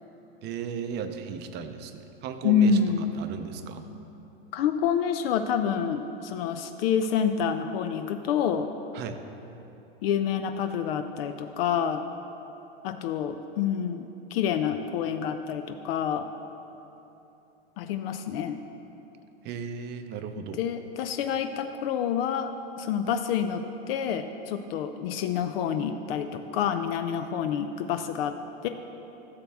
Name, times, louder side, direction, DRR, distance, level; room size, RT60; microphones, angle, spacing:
voice 1, 0.4-1.9 2.2-2.7 3.2-3.8 9.0-9.2 19.4-20.6, right 7 dB, 35° right, 8 dB, 0.6 m, -35 dB
voice 2, 2.4-3.1 4.5-8.7 10.0-12.0 12.8-16.3 17.8-18.6 20.4-28.4 28.6-28.7, left 7 dB, 65° left, 8 dB, 0.6 m, -28 dB
14.5 x 6.9 x 3.5 m, 3.0 s
supercardioid pair, 130°, 31 cm